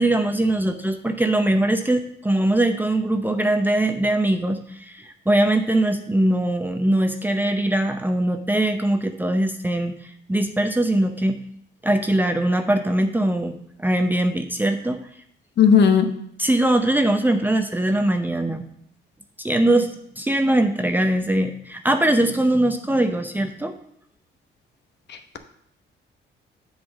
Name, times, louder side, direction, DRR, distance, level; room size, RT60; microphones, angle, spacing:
voice 1, 0.0-9.9 10.3-11.4 11.8-15.0 16.4-18.7 19.4-23.7, right 1 dB, 10° right, 6 dB, 0.7 m, -21 dB
voice 2, 15.6-16.1, left 7 dB, 60° left, 7 dB, 1.0 m, -14 dB
7.5 x 4.2 x 6.4 m, 0.67 s
cardioid pair, 90°, 20 cm